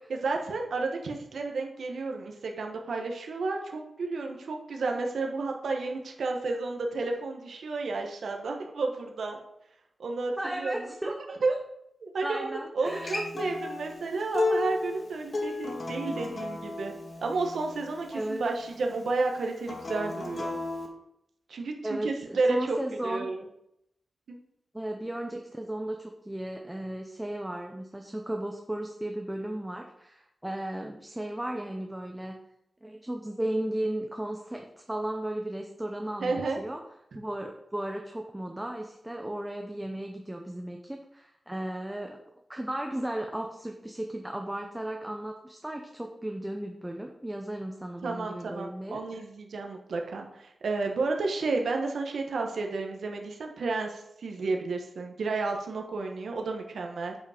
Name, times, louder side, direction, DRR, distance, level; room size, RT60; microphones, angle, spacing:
voice 1, 0.1-9.4 10.0-11.1 11.4-11.5 12.0-16.9 17.2-20.6 21.5-22.8 23.0-23.4 24.3-24.4 36.2-36.6 48.0-57.2, right 3 dB, 80° right, 2 dB, 1.3 m, -31 dB
voice 2, 10.4-11.1 12.2-13.5 18.1-18.5 21.8-23.3 24.7-32.4 32.8-36.8 37.1-42.2 42.5-49.0, right 1 dB, 10° right, 3 dB, 0.7 m, -35 dB
Acoustic guitar, 12.9-18.1 19.6-20.9, left 3 dB, 40° left, 1.5 m, -33 dB
8.1 x 5.4 x 5.0 m, 0.79 s
wide cardioid pair, 150°, 0 cm